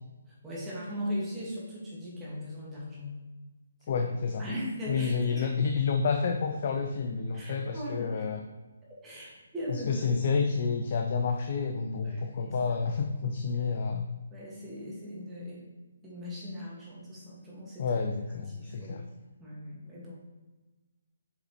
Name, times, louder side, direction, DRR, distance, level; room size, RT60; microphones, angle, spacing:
voice 1, 0.4-3.2 4.4-5.5 7.3-8.2 9.0-10.1 12.0-12.6 14.3-15.6 16.0-17.8 18.5-19.0 19.4-20.2, equal, 10° right, -6 dB, 2.3 m, -39 dB
voice 2, 3.9-4.5 4.9-8.4 9.7-14.1 17.8-19.0, left 5 dB, 40° left, 4 dB, 0.6 m, -29 dB
7.3 x 6.0 x 3.4 m, 1.2 s
figure-of-eight pair, 140°, 0 cm